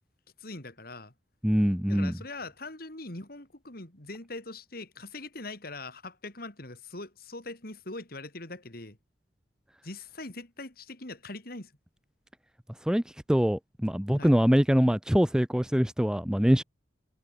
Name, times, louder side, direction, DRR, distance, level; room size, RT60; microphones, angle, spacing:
voice 1, 0.4-1.1 1.9-9.0 9.8-11.7 14.2-14.3, left 2 dB, 55° left, 4.0 m, -42 dB
voice 2, 1.4-2.1 12.8-13.0 13.3-16.6, equal, 5° right, 0.5 m, -23 dB
head